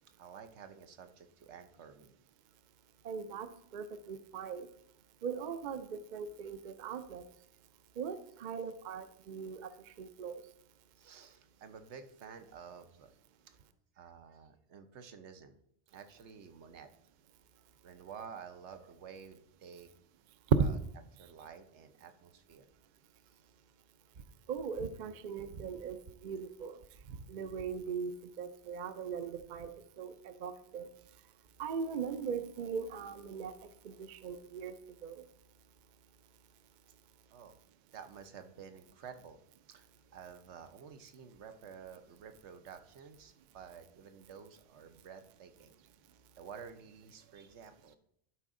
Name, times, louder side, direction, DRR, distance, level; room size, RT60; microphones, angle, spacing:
voice 1, 0.2-2.1 11.0-13.1 13.5-13.6 13.9-15.6 15.9-16.9 17.8-19.9 20.6-20.7 21.2-22.7 23.3-23.4 37.3-37.6 37.9-39.4 39.7-39.9 40.1-45.9 46.4-48.0, right 7 dB, 75° right, 8 dB, 1.0 m, -51 dB
voice 2, 3.0-3.5 3.7-4.7 5.2-7.2 8.0-9.7 10.0-10.4 20.6-20.7 24.5-26.8 27.1-29.7 30.0-30.9 31.6-33.5 33.8-34.8 35.0-35.2, right 6 dB, 55° right, 10 dB, 0.6 m, -39 dB
11.5 x 5.0 x 3.6 m, 0.72 s
omnidirectional pair, 1.2 m